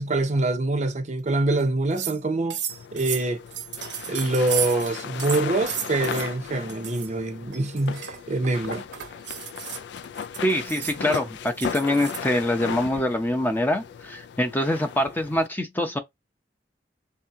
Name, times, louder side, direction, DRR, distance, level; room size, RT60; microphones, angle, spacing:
voice 1, 0.0-2.6 2.9-3.4 4.1-8.8, right 2 dB, 40° right, 0.7 m, -25 dB
sound 1, 1.6-1.7 1.9-2.2 2.5-4.9 5.2-6.3 6.7-7.1 7.5-12.3, right 9 dB, 85° right, 1.0 m, -34 dB
sound 2, 2.7-15.5, left 7 dB, 70° left, 0.3 m, -36 dB
voice 2, 10.4-16.0, left 1 dB, 10° left, 0.6 m, -24 dB
3.6 x 2.8 x 3.5 m
head